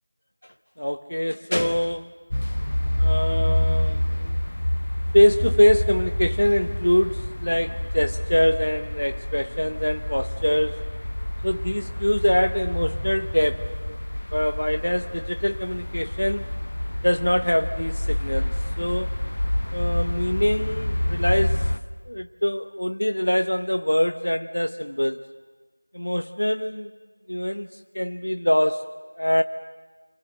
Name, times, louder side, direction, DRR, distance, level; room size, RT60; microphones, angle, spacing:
voice 1, 0.8-2.1 3.0-4.4 5.1-10.8 11.4-14.0 14.3-16.5 17.0-19.1 19.7-21.7 22.1-25.2 25.9-26.9 27.3-29.4, equal, 85° left, 8 dB, 0.9 m, -24 dB
sound 1, 2.3-21.8, left 1 dB, 45° left, 1.0 m, -27 dB
30.0 x 24.0 x 8.0 m, 1.5 s
figure-of-eight pair, 180°, 0 cm